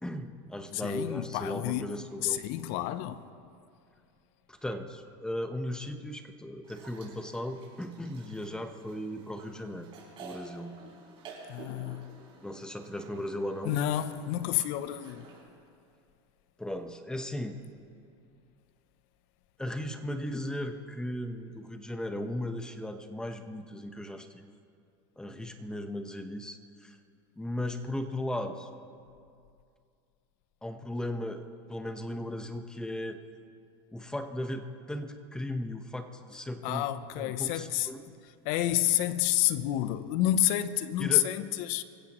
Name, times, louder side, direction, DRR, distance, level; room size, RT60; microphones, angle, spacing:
voice 1, 0.0-2.4 4.5-9.9 10.2-10.7 12.4-13.8 16.6-17.6 19.6-24.4 25.2-27.0 27.4-28.7 30.6-33.2 33.9-36.8 37.2-38.0 41.0-41.3, left 1 dB, 5° left, 1.0 m, -36 dB
voice 2, 0.7-1.9 2.2-3.2 11.5-12.1 13.6-15.2 36.6-37.9 38.4-41.8, left 13 dB, 60° left, 0.7 m, -29 dB
sound 1, 6.6-15.4, right 4 dB, 35° right, 5.0 m, -51 dB
26.5 x 16.0 x 3.1 m
supercardioid pair, 130°, 15 cm